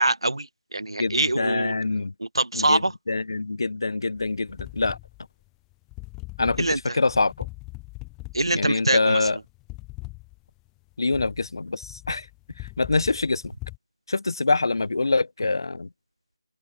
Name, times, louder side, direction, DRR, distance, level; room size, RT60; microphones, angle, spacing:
voice 1, 0.0-1.7 2.2-2.9 6.6-7.0 8.3-9.3, right 2 dB, 80° right, 1.3 m, -24 dB
voice 2, 1.0-2.1 2.5-5.0 6.4-6.6 6.9-7.5 8.5-9.4 11.0-12.3 12.8-13.5 14.1-15.9, left 3 dB, 60° left, 0.8 m, -25 dB
sound 1, 4.2-13.8, left 25 dB, 10° left, 0.7 m, -41 dB
open air
figure-of-eight pair, 160°, 3 cm